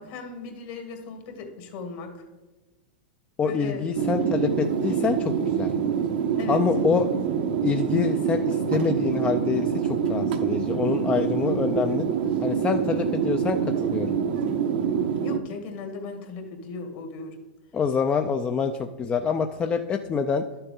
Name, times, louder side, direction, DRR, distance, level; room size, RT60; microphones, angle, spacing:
voice 1, 0.0-2.2 3.4-3.9 6.3-6.6 15.2-17.4, left 4 dB, 55° left, 4 dB, 2.0 m, -37 dB
voice 2, 3.4-5.7 6.5-7.1 7.6-12.1 12.4-14.2 17.7-20.4, left 6 dB, 25° left, 6 dB, 0.5 m, -26 dB
sound 1, 4.0-15.4, right 7 dB, 70° right, 0.9 m, -25 dB
11.5 x 6.8 x 3.8 m, 1.2 s
hypercardioid pair, 105°, 5 cm